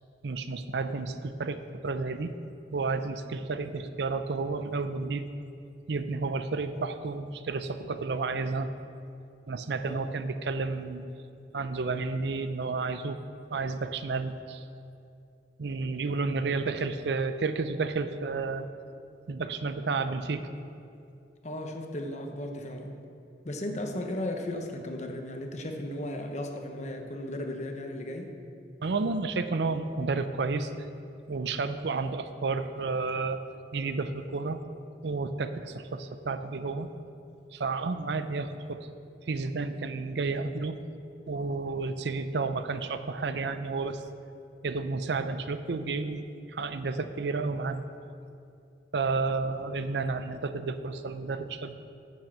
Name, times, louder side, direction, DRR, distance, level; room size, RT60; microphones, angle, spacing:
voice 1, 0.2-2.3 2.7-5.2 5.9-8.7 9.5-11.0 11.5-13.2 13.5-14.6 15.6-18.7 19.3-20.5 28.8-30.7 31.3-33.4 33.7-34.6 35.0-36.9 37.5-38.9 39.3-40.8 41.3-44.0 44.6-47.8 48.9-51.7, right 4 dB, 65° right, 10 dB, 0.5 m, -31 dB
voice 2, 9.8-10.1 21.4-22.9 23.4-28.3, left 1 dB, 40° left, 4 dB, 1.0 m, -35 dB
9.4 x 7.2 x 6.5 m, 2.6 s
head